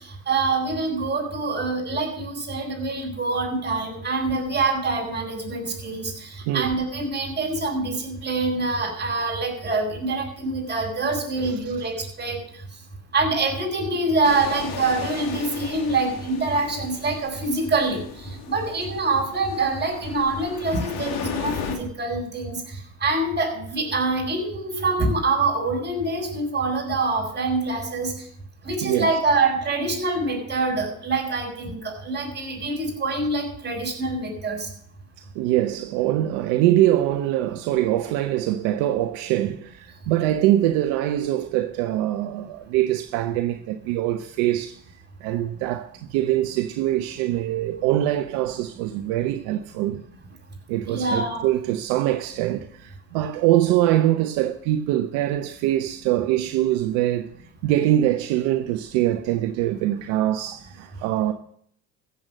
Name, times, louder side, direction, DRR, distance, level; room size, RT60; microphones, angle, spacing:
voice 1, 0.3-12.4 13.1-22.6 23.0-28.1 28.6-34.7 50.9-51.4, right 3 dB, 25° right, 6.9 m, -25 dB
voice 2, 6.5-6.8 11.4-11.6 28.8-29.2 35.3-44.8 45.2-50.0 50.7-57.3 57.6-61.3, right 13 dB, 65° right, 1.0 m, -23 dB
sound 1, 14.2-21.8, left 7 dB, 60° left, 2.8 m, -36 dB
15.0 x 8.1 x 6.2 m
hypercardioid pair, 75°, 43 cm